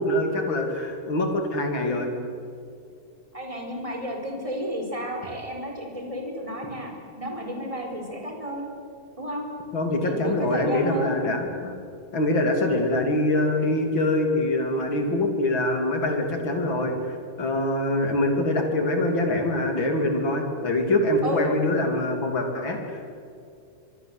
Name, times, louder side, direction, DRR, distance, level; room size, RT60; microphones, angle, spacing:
voice 1, 0.0-2.1 9.7-11.8 12.1-17.0 17.4-23.1, left 1 dB, 40° left, 4 dB, 3.5 m, -24 dB
voice 2, 3.3-8.7 9.2-9.4 10.0-11.1 21.2-21.5, equal, 10° right, 2 dB, 4.5 m, -32 dB
24.5 x 24.0 x 8.1 m, 2.5 s
omnidirectional pair, 3.7 m